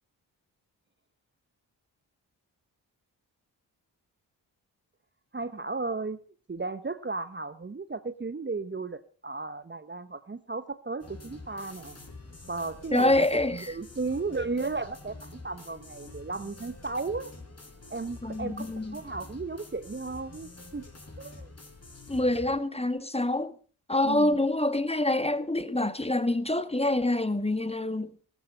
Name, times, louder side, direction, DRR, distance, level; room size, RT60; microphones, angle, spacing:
voice 1, 5.3-6.2 6.5-12.1 12.5-17.3 17.9-20.8 21.2-21.5 24.0-24.4, right 3 dB, 25° right, 1.0 m, -35 dB
sound 1, 11.0-22.6, left 3 dB, 35° left, 4.5 m, -47 dB
voice 2, 12.9-13.7 18.2-19.0 22.1-23.5 23.9-28.3, left 1 dB, 15° left, 1.6 m, -26 dB
14.5 x 14.0 x 5.3 m
supercardioid pair, 40°, 46 cm